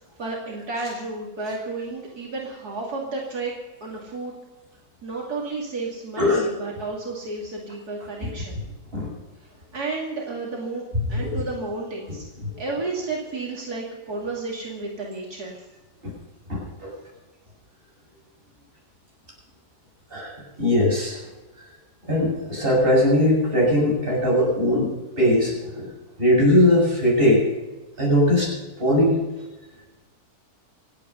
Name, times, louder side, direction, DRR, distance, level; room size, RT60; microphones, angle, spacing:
voice 1, 0.2-3.5 3.8-4.3 5.0-8.6 9.7-12.2 12.6-15.6, right 3 dB, 80° right, -2 dB, 3.0 m, -32 dB
voice 2, 10.9-11.4 12.4-12.5 16.0-16.1 16.5-16.9 20.1-21.2 22.0-25.9 26.2-27.4 28.0-28.5 28.8-29.2, left 1 dB, 35° right, -3 dB, 7.4 m, -20 dB
27.0 x 9.0 x 5.6 m, 1.1 s
omnidirectional pair, 1.6 m